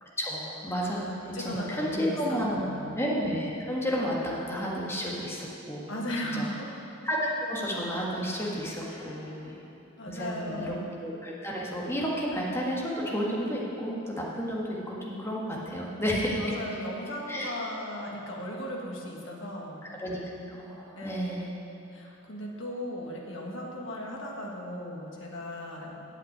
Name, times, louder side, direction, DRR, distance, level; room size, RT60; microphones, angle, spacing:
voice 1, 0.0-2.6 2.9-6.1 6.3-6.5 7.0-9.5 10.0-10.7 11.0-16.5 17.3-17.5 19.9-20.2 20.5-21.5, equal, 15° left, -4 dB, 1.7 m, -31 dB
voice 2, 1.3-3.0 5.9-6.8 8.8-9.7 10.0-10.9 16.4-19.9 21.0-21.5 21.9-26.1, left 1 dB, 70° left, -1 dB, 1.7 m, -37 dB
8.7 x 7.5 x 8.9 m, 2.9 s
head